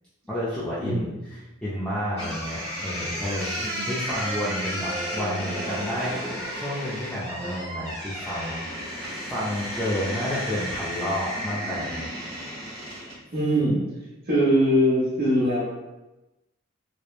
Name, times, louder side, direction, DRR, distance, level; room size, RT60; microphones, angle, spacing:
voice 1, 0.3-8.6 9.3-12.1, equal, 5° left, -10 dB, 0.4 m, -31 dB
voice 2, 0.8-1.1 3.6-3.9 13.3-13.8 14.3-15.6, equal, 45° right, -6 dB, 0.8 m, -22 dB
sound 1, 2.2-13.2, equal, 20° right, 1.3 m, -33 dB
3.0 x 2.0 x 2.3 m, 1.0 s
head